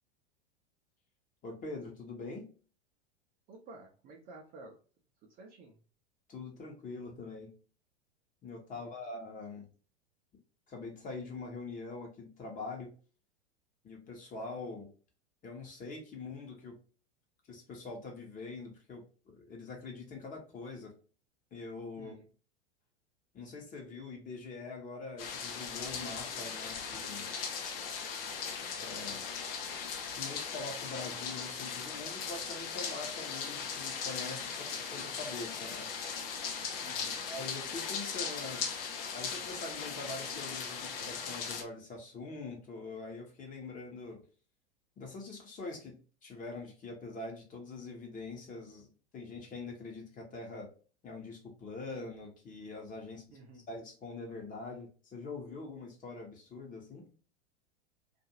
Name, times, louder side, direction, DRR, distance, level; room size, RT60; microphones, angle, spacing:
voice 1, 1.4-2.5 6.3-7.5 8.4-9.7 10.7-12.9 13.8-14.9 15.4-16.8 17.5-20.9 21.5-22.1 23.3-27.3 28.7-29.2 30.1-35.9 37.3-38.8 39.1-44.2 45.0-45.9 46.2-50.7 51.0-53.4 53.7-57.1, left 3 dB, 25° left, 1 dB, 1.0 m, -44 dB
voice 2, 3.5-4.8 5.2-5.8 8.7-9.0 22.0-22.2 36.8-37.3 53.3-53.7, right 2 dB, 25° right, 1 dB, 0.6 m, -52 dB
sound 1, 25.2-41.6, left 6 dB, 55° left, 0.7 m, -38 dB
2.7 x 2.5 x 2.7 m, 0.38 s
figure-of-eight pair, 90°, 34 cm